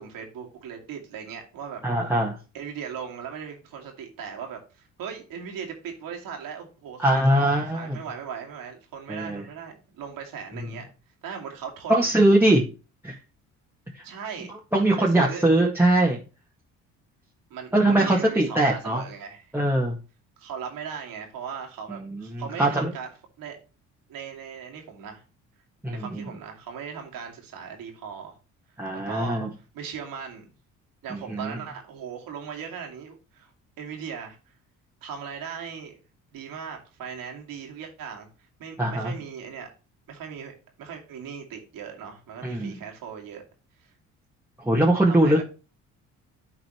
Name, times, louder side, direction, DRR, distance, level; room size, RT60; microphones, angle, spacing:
voice 1, 0.0-1.8 2.5-10.8 11.2-12.1 14.0-14.5 14.8-15.5 17.5-19.5 20.4-23.1 23.4-23.6 24.1-25.2 25.9-28.4 29.1-29.4 29.7-30.5 31.0-33.5 33.8-34.5 35.0-36.0 36.3-38.3 38.6-39.7 40.1-43.4 43.8-43.9 45.1-45.4, right 7 dB, 65° right, 2 dB, 2.4 m, -38 dB
voice 2, 1.8-2.4 7.0-8.0 9.1-9.4 11.9-12.6 13.0-13.2 13.9-14.0 14.7-16.2 17.7-19.0 19.5-20.0 21.9-22.9 25.8-26.2 28.8-29.5 31.1-31.6 38.8-39.1 42.4-42.8 44.6-45.4, right 1 dB, 5° right, -1 dB, 1.8 m, -22 dB
12.0 x 4.1 x 3.1 m, 0.33 s
hypercardioid pair, 60°, 36 cm